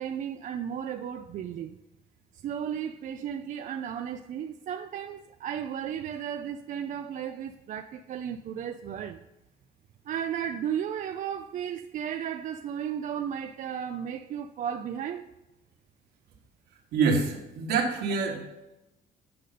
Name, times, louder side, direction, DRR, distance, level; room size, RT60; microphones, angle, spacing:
voice 1, 0.0-1.8 2.3-9.2 10.1-15.3, right 9 dB, 50° right, 0.4 m, -34 dB
voice 2, 16.9-18.4, right 4 dB, 75° right, 1.5 m, -26 dB
8.4 x 5.1 x 4.1 m
cardioid pair, 110°, 17 cm